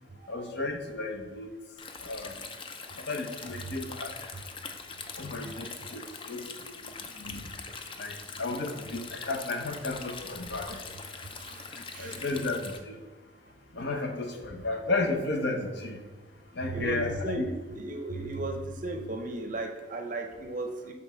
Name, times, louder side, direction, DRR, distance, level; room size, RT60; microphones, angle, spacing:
voice 1, 0.3-1.5 2.0-2.3 3.1-4.1 5.2-7.5 8.0-10.8 12.0-12.9 13.7-16.0 16.5-17.5, left 3 dB, 55° left, 4 dB, 0.8 m, -33 dB
Stream, 1.8-12.8, left 4 dB, 25° left, 0.4 m, -43 dB
voice 2, 5.4-5.8 10.7-10.8 11.5-12.4 16.6-20.9, right 2 dB, 40° right, 5 dB, 0.6 m, -35 dB
5.3 x 3.9 x 5.5 m, 1.4 s
head